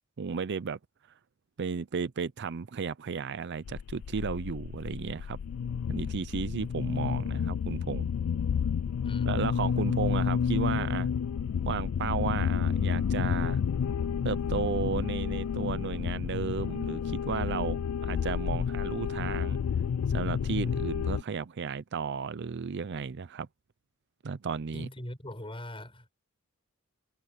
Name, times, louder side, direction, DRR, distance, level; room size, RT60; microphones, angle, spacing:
voice 1, 0.2-0.8 1.6-5.4 5.9-8.1 9.2-11.1 11.6-13.6 14.2-19.6 20.1-23.5 24.2-24.9, right 5 dB, 55° right, 0.5 m, -34 dB
sound 1, 3.7-21.2, left 7 dB, 85° left, 0.4 m, -30 dB
voice 2, 9.0-9.4 24.7-26.1, left 1 dB, 25° left, 7.6 m, -41 dB
head